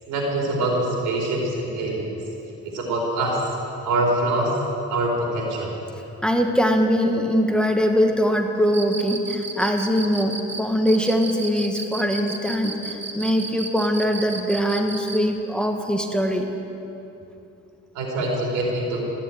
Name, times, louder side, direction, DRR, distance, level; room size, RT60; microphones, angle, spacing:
voice 1, 0.1-2.1 2.6-3.6 3.8-4.6 4.9-5.8 17.9-19.0, right 1 dB, 90° right, -1 dB, 4.2 m, -24 dB
voice 2, 6.2-16.5, equal, 5° left, 3 dB, 1.4 m, -22 dB
Cricket, 8.7-15.3, right 4 dB, 40° right, 1.6 m, -33 dB
14.5 x 10.0 x 9.1 m, 2.9 s
cardioid pair, 90°, 30 cm